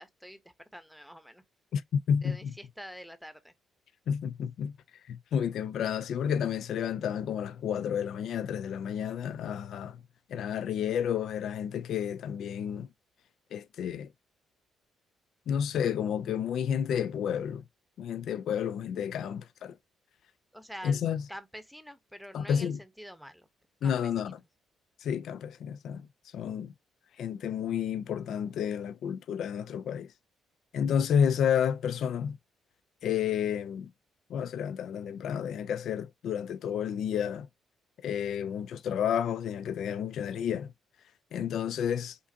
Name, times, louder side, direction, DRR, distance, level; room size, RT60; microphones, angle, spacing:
voice 1, 0.0-1.4 2.2-3.5 20.5-21.0 21.3-23.5 23.8-24.3, equal, ahead, 0.8 m, -46 dB
voice 2, 1.7-2.5 4.1-4.8 5.1-10.0 10.3-12.9 13.5-14.1 15.5-17.6 18.0-19.8 20.8-21.2 22.3-22.8 23.8-24.4 25.0-26.1 26.3-26.7 27.2-30.1 30.7-32.4 33.0-33.9 34.3-37.5 38.0-40.7 41.3-42.2, left 8 dB, 70° left, 0.3 m, -31 dB
5.0 x 2.5 x 2.6 m
cardioid pair, 90°, 0 cm